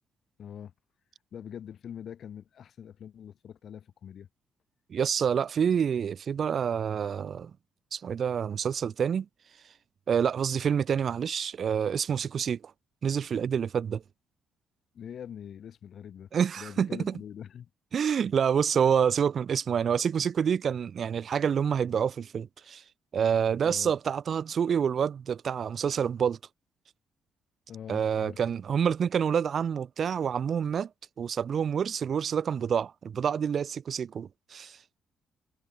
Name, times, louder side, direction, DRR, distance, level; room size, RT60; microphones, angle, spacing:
voice 1, 0.4-0.7 1.3-4.3 14.9-16.3 16.6-17.7 23.6-23.9 27.7-28.4, left 9 dB, 60° left, 2.6 m, -43 dB
voice 2, 4.9-7.5 7.9-9.3 10.1-12.6 13.0-14.0 16.3-17.1 17.9-22.8 23.1-26.4 27.9-30.9 31.2-34.8, right 7 dB, 55° right, 0.4 m, -27 dB
cardioid pair, 90°, 0 cm